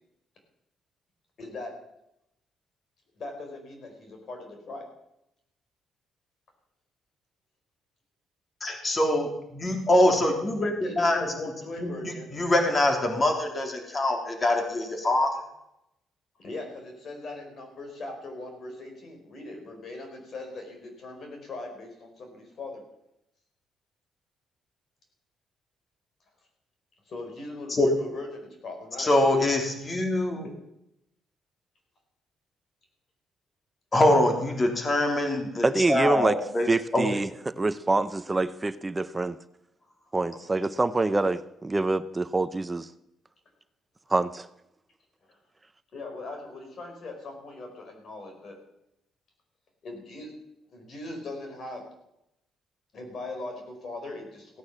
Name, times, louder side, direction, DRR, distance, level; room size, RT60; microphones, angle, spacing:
voice 1, 1.4-1.8 3.2-4.9 10.0-10.2 10.6-12.3 16.4-22.8 27.1-29.4 30.3-30.5 45.3-45.4 45.9-48.6 49.8-50.3 50.7-51.8 52.9-54.6, left 2 dB, 55° left, 4 dB, 4.8 m, -40 dB
voice 2, 8.6-11.2 11.8-15.3 27.7-27.9 29.0-30.5 33.9-36.7 36.9-37.1, left 1 dB, 30° left, 3 dB, 3.3 m, -24 dB
voice 3, 35.6-36.4 36.7-39.4 40.1-42.9 44.1-44.5, right 2 dB, 20° right, 14 dB, 0.6 m, -26 dB
16.0 x 9.4 x 7.4 m, 0.84 s
cardioid pair, 90°, 0 cm